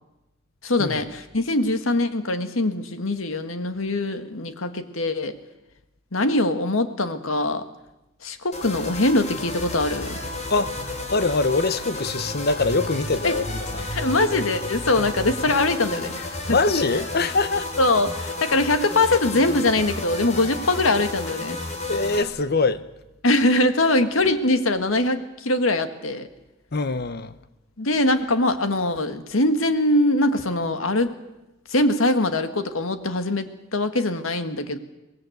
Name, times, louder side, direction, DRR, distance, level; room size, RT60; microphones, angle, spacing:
voice 1, 0.6-5.3 6.1-7.6 8.2-10.2 13.2-13.4 13.9-16.6 17.8-21.6 23.2-26.3 27.8-31.1 31.7-34.8, left 2 dB, 85° left, 1.8 m, -22 dB
sound 1, 8.5-22.2, left 2 dB, 35° left, 4.0 m, -32 dB
voice 2, 11.1-13.9 15.0-15.1 16.5-17.7 21.9-22.9 26.7-27.4, left 3 dB, 50° left, 1.0 m, -23 dB
23.5 x 19.0 x 8.0 m
head